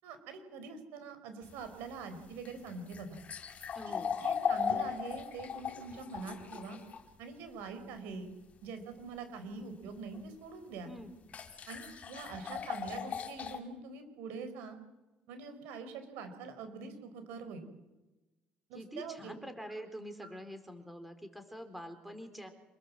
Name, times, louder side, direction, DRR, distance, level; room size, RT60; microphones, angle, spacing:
voice 1, 0.0-3.2 3.9-6.8 7.2-8.3 8.6-10.9 11.7-14.8 15.3-17.7 18.7-19.3, right 4 dB, 85° right, 9 dB, 4.7 m, -44 dB
sound 1, 1.4-7.0 10.1-10.2 11.3-13.6, left 7 dB, 45° left, 4.9 m, -37 dB
voice 2, 3.7-4.1 10.9-11.1 18.7-22.5, equal, 5° right, 8 dB, 4.2 m, -45 dB
27.5 x 19.5 x 7.6 m, 1.1 s
supercardioid pair, 85°, 3 cm